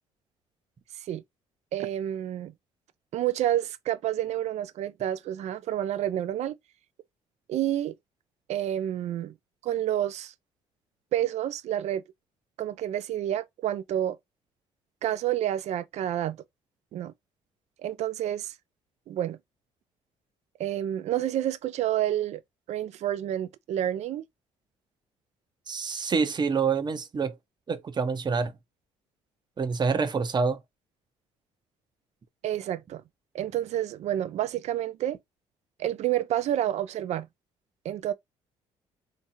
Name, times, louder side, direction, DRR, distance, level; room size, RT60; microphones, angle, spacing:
voice 1, 1.7-2.5 3.1-6.5 7.5-7.9 8.5-9.3 9.6-10.3 11.1-12.0 12.6-14.2 15.0-16.4 16.9-17.1 17.8-18.5 19.1-19.4 20.6-22.4 22.7-24.2 32.4-33.0 33.3-35.2 35.8-37.3 37.8-38.1, right 12 dB, 60° right, 0.5 m, -29 dB
voice 2, 25.7-27.4 27.7-28.5 29.6-30.6, right 5 dB, 35° right, 0.8 m, -27 dB
3.5 x 2.9 x 2.7 m
supercardioid pair, 70°, 13 cm